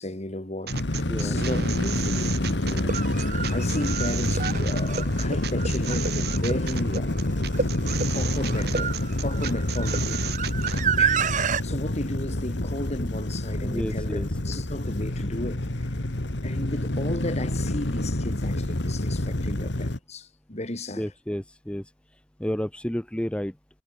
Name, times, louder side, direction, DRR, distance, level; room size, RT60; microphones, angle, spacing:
voice 1, 0.0-7.1 7.6-7.7 8.1-10.4 10.7-11.3 11.6-15.9 16.4-21.0, left 1 dB, 40° left, 2.5 m, -34 dB
sound 1, 0.7-20.0, left 1 dB, 75° left, 1.9 m, -28 dB
sound 2, 0.7-10.9, right 6 dB, 60° right, 2.7 m, -34 dB
voice 2, 1.0-1.4 13.6-14.6 21.0-21.9 22.4-23.5, equal, 5° left, 0.7 m, -31 dB
sound 3, 1.6-1.7 2.7-11.6, right 7 dB, 45° right, 1.0 m, -30 dB
head